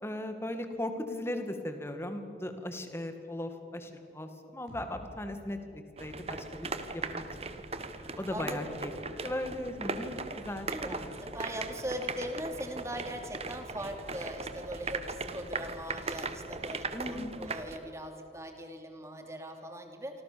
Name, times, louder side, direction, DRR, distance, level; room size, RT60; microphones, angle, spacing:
voice 1, 0.0-7.3 8.2-11.1 16.9-17.4, left 1 dB, 15° left, 7 dB, 2.2 m, -38 dB
sound 1, 4.7-8.5, equal, 75° right, 7.5 m, -55 dB
sound 2, 6.0-17.8, right 4 dB, 35° right, 1.4 m, -39 dB
voice 2, 7.0-7.3 8.3-8.8 10.7-20.2, equal, 15° right, 4 dB, 2.9 m, -40 dB
28.0 x 25.5 x 7.0 m, 2.5 s
head